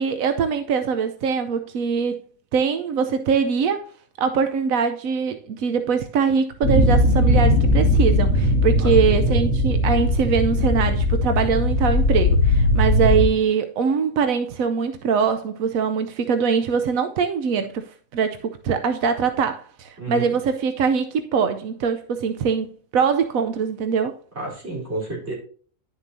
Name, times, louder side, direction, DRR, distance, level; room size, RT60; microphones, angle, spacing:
voice 1, 0.0-2.2 2.5-3.8 4.2-24.2, right 6 dB, 85° right, 1.1 m, -22 dB
sound 1, 6.6-13.3, left 1 dB, 70° left, 1.7 m, -19 dB
voice 2, 8.8-9.2 20.0-20.4 24.3-25.3, right 2 dB, 50° right, 4.2 m, -31 dB
10.5 x 6.8 x 2.7 m
omnidirectional pair, 1.4 m